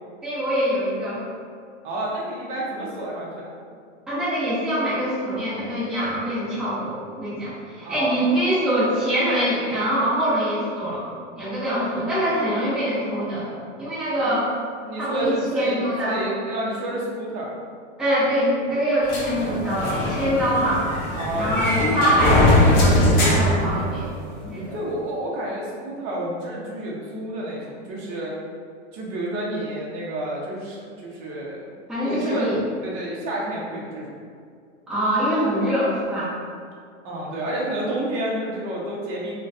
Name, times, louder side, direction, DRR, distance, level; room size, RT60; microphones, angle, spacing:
voice 1, 0.2-1.2 4.1-11.1 11.4-13.5 13.8-14.5 15.0-16.2 18.0-20.8 21.3-24.1 24.4-24.7 31.9-32.6 34.9-36.3, equal, ahead, -13 dB, 0.8 m, -24 dB
voice 2, 1.8-3.5 7.8-8.3 14.2-14.3 14.9-17.5 21.1-22.4 24.7-28.4 28.9-31.6 32.0-32.5 32.8-34.2 37.0-39.4, right 1 dB, 35° right, -4 dB, 0.7 m, -30 dB
sound 1, 19.1-24.3, left 1 dB, 25° left, 0.5 m, -21 dB
3.8 x 2.2 x 2.5 m, 2.2 s
supercardioid pair, 145°, 38 cm